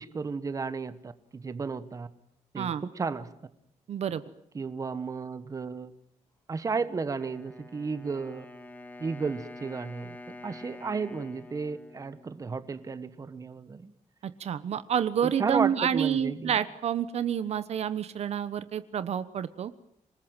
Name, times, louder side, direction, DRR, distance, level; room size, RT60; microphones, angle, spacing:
voice 1, 0.0-2.1 2.5-3.3 4.5-5.9 6.5-8.4 9.0-13.9 15.2-16.6, right 4 dB, 25° right, 13 dB, 1.3 m, -33 dB
voice 2, 3.9-4.2 14.2-19.7, right 9 dB, 60° right, 13 dB, 1.1 m, -29 dB
Wind instrument woodwind instrument, 7.2-13.1, left 2 dB, 15° left, 2.3 m, -47 dB
27.0 x 20.0 x 9.1 m, 0.73 s
cardioid pair, 145°, 12 cm